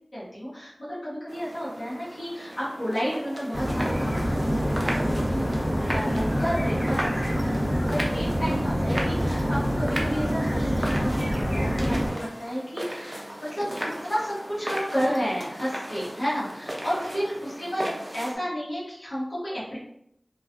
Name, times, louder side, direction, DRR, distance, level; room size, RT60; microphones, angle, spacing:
voice 1, 0.1-13.7 14.0-19.8, equal, 85° left, -10 dB, 1.0 m, -32 dB
sound 1, 1.3-18.4, right 1 dB, 35° right, 0.5 m, -36 dB
sound 2, 3.5-12.1, equal, 30° left, 1.0 m, -26 dB
2.3 x 2.2 x 2.4 m, 0.75 s
wide cardioid pair, 50°, 0 cm